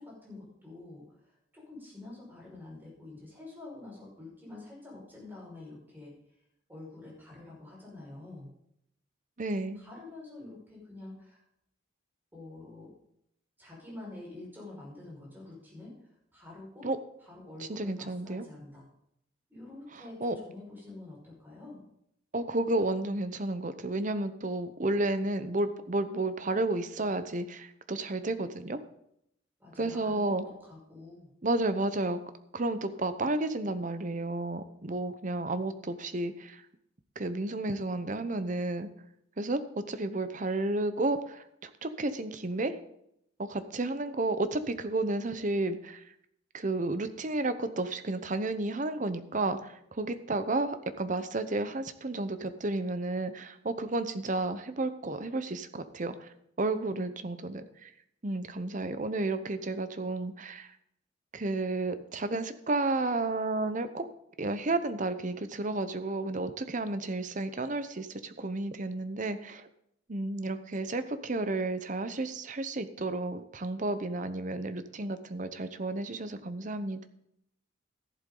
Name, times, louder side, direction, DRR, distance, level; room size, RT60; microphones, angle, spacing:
voice 1, 0.0-6.1 6.7-8.6 9.7-11.4 12.3-12.9 13.6-16.9 17.2-18.9 19.5-21.8 29.6-31.3, left 2 dB, 10° right, -4 dB, 5.4 m, -47 dB
voice 2, 9.4-9.8 16.8-17.0 17.7-18.4 20.2-20.3 22.3-28.8 29.8-30.4 31.4-32.2 32.5-36.6 37.2-38.9 39.4-42.7 43.4-46.0 46.5-56.3 56.6-57.9 58.2-60.7 61.3-64.1 64.4-69.7 70.1-77.1, right 2 dB, 40° right, 11 dB, 0.8 m, -32 dB
14.0 x 11.5 x 3.9 m, 0.75 s
head